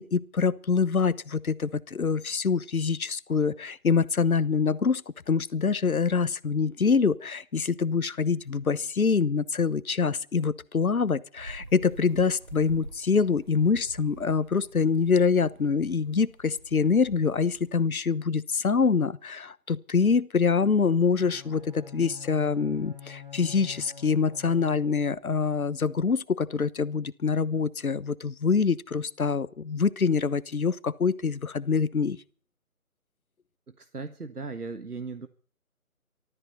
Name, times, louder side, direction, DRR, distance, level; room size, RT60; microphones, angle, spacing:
voice 1, 0.0-5.0 5.3-32.2, left 5 dB, 70° left, 1.1 m, -25 dB
sound 1, 11.4-17.7, right 2 dB, 30° right, 0.8 m, -47 dB
Bowed string instrument, 21.1-25.3, left 8 dB, 10° right, 3.1 m, -46 dB
voice 2, 33.7-35.3, right 4 dB, 85° right, 1.6 m, -37 dB
23.5 x 13.5 x 4.3 m
figure-of-eight pair, 160°, 44 cm